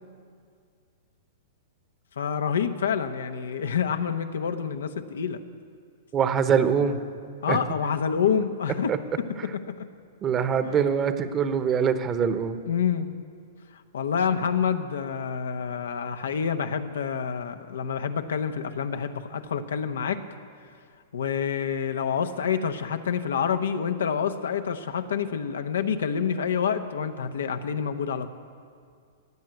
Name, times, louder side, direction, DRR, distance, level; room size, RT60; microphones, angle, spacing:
voice 1, 2.2-5.4 7.4-9.2 9.7-9.9 10.6-10.8 12.7-13.1 13.9-20.2 21.1-28.3, left 7 dB, 80° left, 8 dB, 0.9 m, -27 dB
voice 2, 6.1-7.0 7.5-7.6 8.9-9.0 10.2-12.6, right 7 dB, 25° right, 10 dB, 1.0 m, -23 dB
16.5 x 7.6 x 9.3 m, 2.2 s
hypercardioid pair, 125°, 0 cm